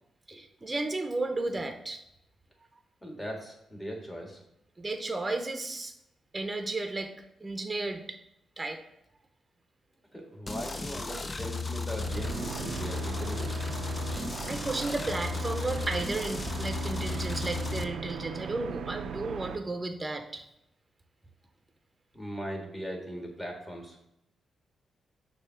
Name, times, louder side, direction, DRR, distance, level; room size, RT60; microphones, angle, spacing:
voice 1, 0.3-2.0 4.8-5.9 6.3-7.2 7.4-8.2 8.6-8.8 14.1-20.4, right 2 dB, 25° right, 6 dB, 0.7 m, -33 dB
voice 2, 3.0-4.4 10.1-13.6 22.1-24.0, equal, 10° left, 0 dB, 1.8 m, -39 dB
sound 1, 10.5-17.8, left 4 dB, 30° left, 0.4 m, -35 dB
sound 2, 11.9-19.6, right 7 dB, 80° right, 0.4 m, -39 dB
6.5 x 2.8 x 5.7 m, 0.81 s
cardioid pair, 75°, 0 cm